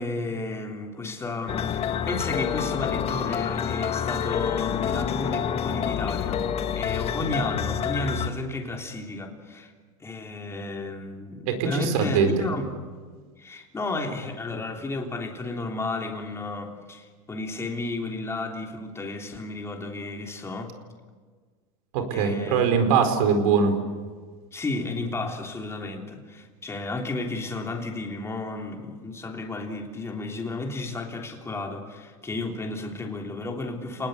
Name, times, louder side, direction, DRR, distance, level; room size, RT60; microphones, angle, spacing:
voice 1, 0.0-6.4 6.7-9.7 10.0-12.7 13.4-20.8 22.1-22.6 24.5-34.1, left 2 dB, 15° left, 3.4 m, -33 dB
sound 1, 1.5-8.3, left 8 dB, 35° left, 1.5 m, -28 dB
voice 2, 11.5-12.3 21.9-23.8, right 6 dB, 80° right, 4.6 m, -22 dB
30.0 x 20.0 x 8.3 m
supercardioid pair, 130°, 18 cm